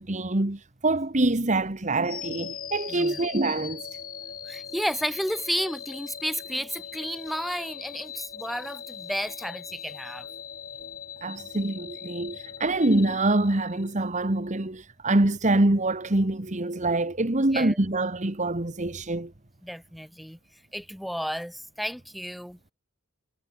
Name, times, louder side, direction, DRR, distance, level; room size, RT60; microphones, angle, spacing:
voice 1, 0.0-3.8 11.2-19.3, right 2 dB, 35° right, 1.5 m, -25 dB
sound 1, 2.0-14.2, left 7 dB, 45° left, 3.7 m, -40 dB
voice 2, 2.9-3.2 4.5-10.3 17.5-17.8 19.6-20.4 20.7-22.6, equal, ahead, 2.4 m, -32 dB
head